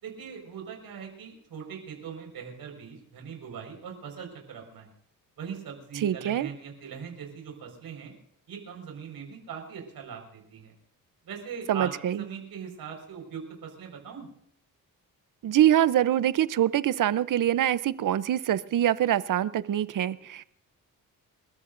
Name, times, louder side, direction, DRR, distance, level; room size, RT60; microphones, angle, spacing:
voice 1, 0.0-4.9 5.4-8.1 8.5-10.7 11.2-14.3, right 7 dB, 80° right, 2 dB, 5.1 m, -40 dB
voice 2, 6.0-6.5 11.7-12.2 15.4-20.4, right 11 dB, 60° right, 16 dB, 0.7 m, -24 dB
29.0 x 14.0 x 2.6 m, 0.68 s
cardioid pair, 110°, 35 cm